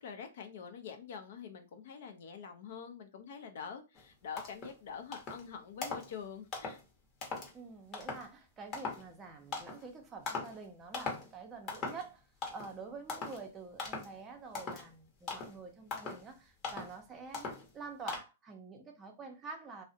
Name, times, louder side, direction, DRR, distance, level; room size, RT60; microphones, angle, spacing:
voice 1, 0.0-6.8, left 6 dB, 60° left, 0.6 m, -46 dB
sound 1, 4.0-4.1 4.4-4.8 5.1-5.5 5.8-6.1 6.5-6.8 7.2-7.5 7.9-8.3 8.7-9.1 9.5-9.8 10.3-10.6 10.9-11.3 11.7-12.1 12.4-12.8 13.1-13.4 13.8-14.1 14.5-14.9 15.3-15.6 15.9-16.3 16.6-17.0 17.3-17.7 18.1-18.2, left 4 dB, 30° left, 0.9 m, -40 dB
voice 2, 7.5-19.8, right 4 dB, 20° right, 0.5 m, -48 dB
2.4 x 2.0 x 2.7 m
hypercardioid pair, 135°, 0 cm